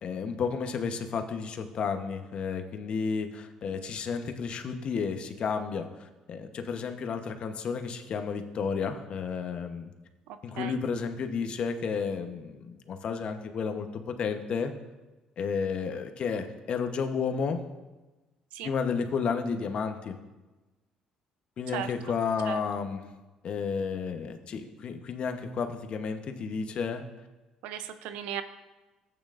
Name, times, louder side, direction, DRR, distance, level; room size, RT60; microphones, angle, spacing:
voice 1, 0.0-9.9 10.4-14.7 15.4-17.6 18.6-20.2 21.6-23.1 23.4-27.0, left 5 dB, 55° left, 6 dB, 1.0 m, -32 dB
voice 2, 10.3-10.8 18.5-18.7 21.7-21.9 22.5-22.6 27.6-28.4, right 10 dB, 85° right, 10 dB, 0.5 m, -37 dB
14.0 x 8.9 x 2.5 m, 1.1 s
cardioid pair, 85°, 2 cm